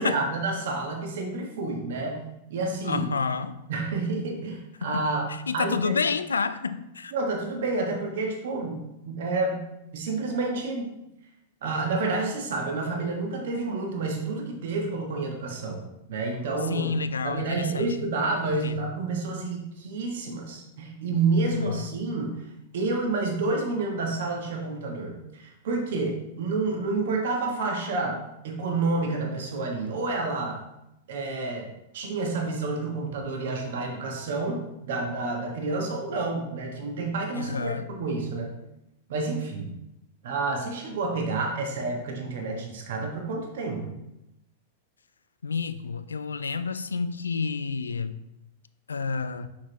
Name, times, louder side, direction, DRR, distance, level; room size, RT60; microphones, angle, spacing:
voice 1, 0.0-2.2 2.5-3.1 3.7-6.0 7.1-8.8 9.1-9.6 9.9-10.9 11.6-15.8 16.1-16.9 17.2-22.3 22.7-28.2 28.4-30.6 31.1-31.7 31.9-38.5 39.1-39.7 40.2-43.9, right 3 dB, 65° right, 1 dB, 1.4 m, -29 dB
voice 2, 2.9-3.6 4.8-5.1 5.5-7.1 16.7-17.9 18.6-18.8 21.6-21.9 37.3-37.9 45.4-48.2 48.9-49.5, left 5 dB, 80° left, 13 dB, 0.3 m, -29 dB
6.0 x 6.0 x 3.0 m, 0.88 s
figure-of-eight pair, 100°, 0 cm